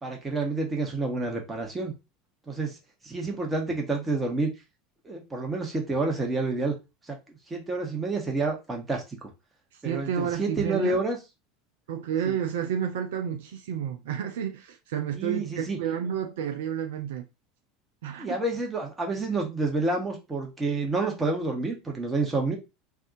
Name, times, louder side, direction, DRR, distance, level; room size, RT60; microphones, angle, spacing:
voice 1, 0.0-1.9 2.5-2.8 3.0-4.5 5.0-6.7 7.0-7.2 7.5-9.3 9.8-11.2 12.2-12.4 15.1-15.8 18.2-22.6, right 3 dB, 15° right, 1.2 m, -29 dB
voice 2, 9.8-11.0 11.9-17.3 18.0-18.3, right 8 dB, 65° right, 0.4 m, -30 dB
3.4 x 2.5 x 2.5 m
figure-of-eight pair, 75°, 0 cm